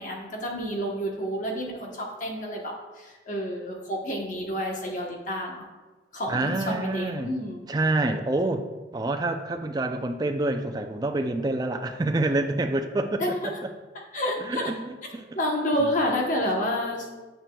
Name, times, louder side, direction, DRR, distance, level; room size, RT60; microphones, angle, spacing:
voice 1, 0.0-5.7 6.1-7.8 13.2-13.5 14.1-14.7 15.3-17.2, equal, 40° left, 0 dB, 1.0 m, -29 dB
voice 2, 6.3-7.3 7.7-13.2 14.4-15.4, right 2 dB, 20° right, 5 dB, 0.4 m, -27 dB
9.0 x 6.7 x 2.3 m, 1.2 s
head